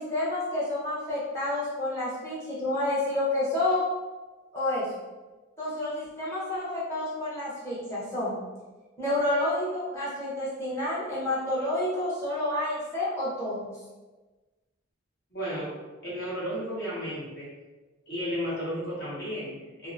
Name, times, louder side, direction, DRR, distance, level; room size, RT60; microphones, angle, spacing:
voice 1, 0.0-3.8 4.5-4.9 5.6-8.4 9.0-13.7, left 1 dB, 15° left, -9 dB, 0.9 m, -29 dB
voice 2, 15.3-15.7 16.0-17.5 18.1-19.9, equal, 50° left, -8 dB, 1.2 m, -33 dB
2.7 x 2.4 x 2.5 m, 1.2 s
head